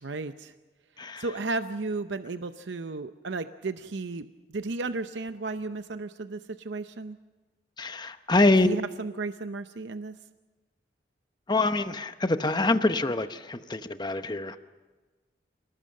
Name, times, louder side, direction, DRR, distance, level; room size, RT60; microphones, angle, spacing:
voice 1, 0.0-0.5 1.0-7.2 8.6-10.2, right 3 dB, 70° right, 10 dB, 0.7 m, -34 dB
voice 2, 7.8-8.8 11.5-14.6, left 2 dB, 20° left, 10 dB, 0.8 m, -25 dB
27.5 x 19.0 x 7.6 m, 1.3 s
head